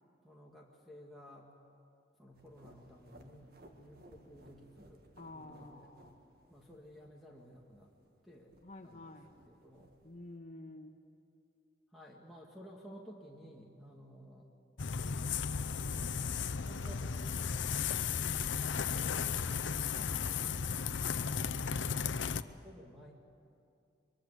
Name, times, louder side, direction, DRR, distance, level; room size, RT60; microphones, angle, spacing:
voice 1, 0.2-1.5 2.2-3.5 3.8-5.0 5.3-5.9 6.5-7.9 8.2-8.6 8.8-9.1 9.5-9.9 11.9-14.5 15.5-16.2 16.5-17.7 18.9-19.9 20.3-20.6 22.6-23.1, equal, ahead, -2 dB, 2.0 m, -55 dB
sound 1, 2.3-10.4, right 1 dB, 55° right, 1.9 m, -62 dB
voice 2, 5.2-6.2 8.6-9.4 10.0-10.9 19.9-20.4, left 2 dB, 40° left, 4 dB, 1.7 m, -50 dB
sound 2, 14.8-22.4, left 6 dB, 85° left, 0.7 m, -35 dB
23.5 x 23.5 x 8.3 m, 2.5 s
head